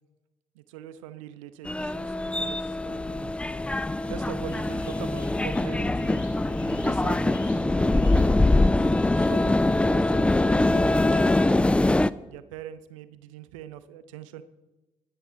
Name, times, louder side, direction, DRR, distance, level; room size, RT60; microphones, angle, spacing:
voice 1, 0.5-3.3 4.1-6.2 6.8-11.7 12.3-14.4, right 11 dB, 70° right, 13 dB, 0.6 m, -43 dB
sound 1, 1.7-12.1, left 2 dB, 5° left, 0.3 m, -23 dB
sound 2, 4.2-9.5, left 5 dB, 70° left, 1.7 m, -52 dB
sound 3, 4.3-9.9, left 3 dB, 55° left, 1.7 m, -51 dB
20.0 x 6.9 x 3.8 m, 1.1 s
figure-of-eight pair, 45°, 17 cm